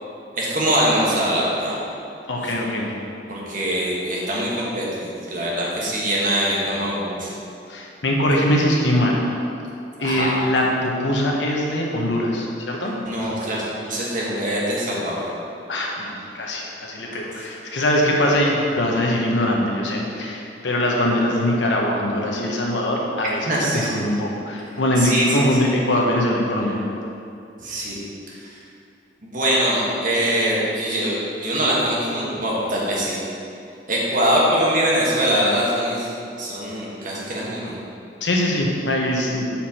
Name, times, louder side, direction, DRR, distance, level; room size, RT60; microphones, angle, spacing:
voice 1, 0.3-1.8 2.4-2.5 3.3-7.3 10.0-10.4 13.0-15.2 23.5-23.9 25.0-25.5 27.6-28.0 28.3-28.5 29.2-33.2 33.9-36.1 36.4-37.7, right 1 dB, 50° right, -5 dB, 1.4 m, -23 dB
voice 2, 2.3-2.9 7.7-9.2 10.0-12.9 15.7-26.7 38.2-39.5, left 1 dB, 85° left, -1 dB, 1.0 m, -22 dB
7.0 x 4.5 x 4.3 m, 2.6 s
head